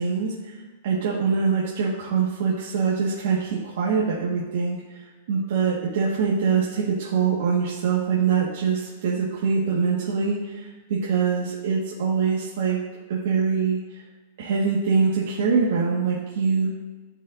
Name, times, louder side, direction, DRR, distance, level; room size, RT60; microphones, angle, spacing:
voice 1, 0.0-5.0 5.3-12.8 13.1-13.8 14.4-16.7, right 5 dB, 65° right, -5 dB, 1.6 m, -24 dB
14.0 x 5.4 x 2.6 m, 1.3 s
supercardioid pair, 155°, 0 cm